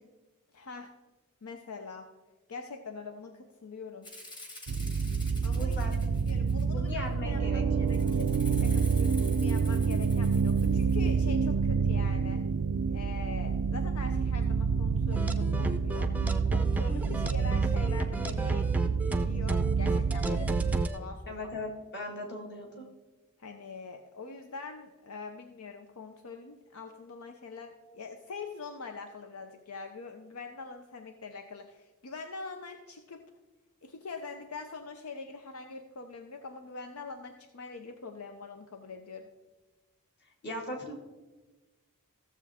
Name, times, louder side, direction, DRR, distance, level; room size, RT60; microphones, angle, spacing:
voice 1, 0.5-0.9 1.4-2.1 2.5-4.1 5.4-5.7 6.0-12.4 12.9-21.4 23.4-33.3 33.8-39.3, left 4 dB, 80° left, 6 dB, 0.7 m, -44 dB
Rattle (instrument), 4.0-6.9 7.9-11.1, left 2 dB, 20° left, 1.3 m, -48 dB
sound 1, 4.7-20.8, right 5 dB, 80° right, 0.4 m, -28 dB
voice 2, 5.5-6.0 6.7-8.0 21.3-22.9 40.4-40.9, left 1 dB, 50° left, 0 dB, 2.1 m, -39 dB
sound 2, 15.1-21.0, right 2 dB, 5° right, 0.5 m, -33 dB
15.0 x 7.1 x 3.5 m, 1.2 s
head